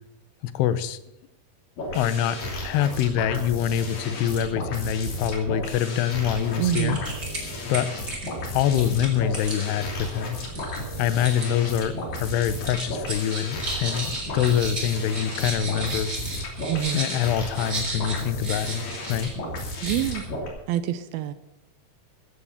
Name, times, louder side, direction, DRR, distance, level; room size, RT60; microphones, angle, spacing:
voice 1, 0.4-1.0 1.9-7.0 7.7-7.9 8.5-10.4 11.0-16.1 16.9-19.3, left 10 dB, 85° left, 14 dB, 2.9 m, -25 dB
sound 1, 1.8-20.5, left 1 dB, 60° left, 4.6 m, -33 dB
sound 2, 6.3-6.4 6.7-7.4 7.7-11.5 11.8-12.3 12.6-19.3 19.6-20.3, right 2 dB, 25° right, 3.7 m, -34 dB
voice 2, 6.6-7.0 16.7-17.0 19.8-20.2 20.7-21.3, right 11 dB, 80° right, 12 dB, 2.3 m, -26 dB
15.0 x 8.7 x 7.1 m, 0.88 s
omnidirectional pair, 4.7 m